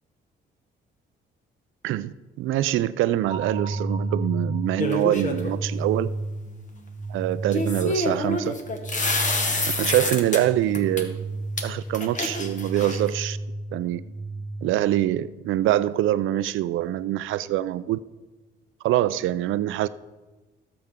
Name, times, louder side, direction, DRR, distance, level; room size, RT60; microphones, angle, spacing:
voice 1, 1.8-6.1 7.1-8.6 9.8-11.2 11.6-13.4 13.7-14.0 14.6-18.0 18.8-19.9, right 13 dB, 85° right, 0.5 m, -24 dB
sound 1, 3.2-15.2, right 2 dB, 20° right, 1.1 m, -33 dB
sound 2, 4.8-5.5 7.5-10.4 10.7-11.0 11.6-11.7 11.9-13.1, left 2 dB, 40° left, 1.5 m, -27 dB
18.0 x 7.1 x 3.7 m
cardioid pair, 90°, 20 cm